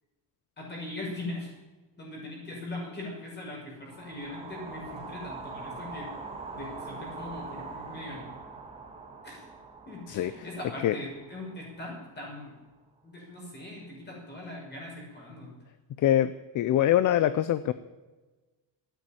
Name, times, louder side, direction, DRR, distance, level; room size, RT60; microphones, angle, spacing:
voice 1, 0.6-1.5 2.0-6.1 6.5-8.3 9.2-9.5 9.9-12.5 13.0-15.5, left 2 dB, 25° left, -3 dB, 6.0 m, -40 dB
sound 1, 3.8-12.0, right 4 dB, 15° right, 2.0 m, -43 dB
voice 2, 16.0-17.7, left 11 dB, 45° left, 14 dB, 0.5 m, -24 dB
13.5 x 9.3 x 8.7 m, 1.2 s
cardioid pair, 175°, 42 cm